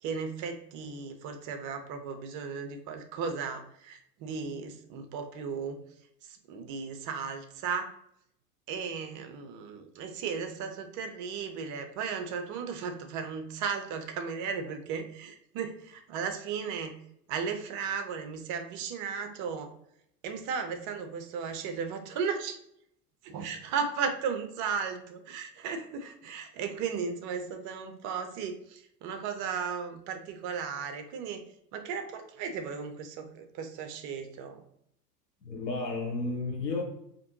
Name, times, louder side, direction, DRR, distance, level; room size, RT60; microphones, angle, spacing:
voice 1, 0.0-5.8 6.2-7.9 8.7-17.0 17.3-19.7 20.2-22.6 23.2-31.4 31.7-34.6, right 6 dB, 40° right, 7 dB, 0.7 m, -35 dB
voice 2, 35.4-36.8, left 3 dB, 90° left, 0 dB, 1.2 m, -32 dB
4.2 x 2.9 x 2.7 m, 0.72 s
figure-of-eight pair, 85°, 49 cm